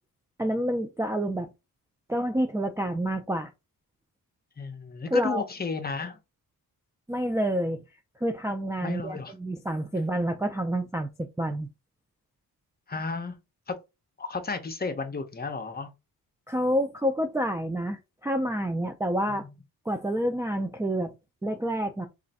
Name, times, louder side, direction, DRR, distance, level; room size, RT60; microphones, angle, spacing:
voice 1, 0.4-1.5 2.1-3.5 5.1-5.4 7.1-7.8 8.2-11.7 16.5-19.5 19.9-21.1 21.4-22.1, equal, 10° right, 0.3 m, -28 dB
voice 2, 4.6-6.2 8.8-9.3 12.9-13.4 13.7-13.8 14.2-15.9, left 4 dB, 25° left, 0.7 m, -33 dB
3.2 x 2.5 x 4.0 m
wide cardioid pair, 140°, 35 cm